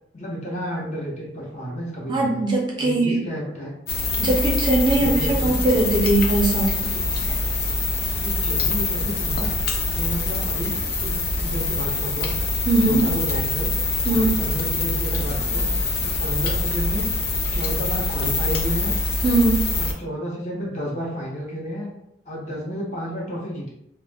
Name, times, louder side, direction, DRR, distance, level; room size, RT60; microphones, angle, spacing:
voice 1, 0.1-2.4 2.8-3.7 4.9-5.6 7.3-7.8 8.1-9.5 9.9-10.7 11.0-12.3 12.8-13.7 14.0-15.7 16.0-17.1 17.5-19.0 19.8-21.9 22.3-23.7, equal, 40° left, -4 dB, 0.8 m, -31 dB
voice 2, 2.1-3.2 4.2-6.8 12.7-13.1 14.1-14.3 19.2-19.7, right 2 dB, 25° right, -2 dB, 0.4 m, -20 dB
sound 1, 3.9-19.9, left 2 dB, 60° left, 0.4 m, -24 dB
2.3 x 2.0 x 3.3 m, 0.80 s
head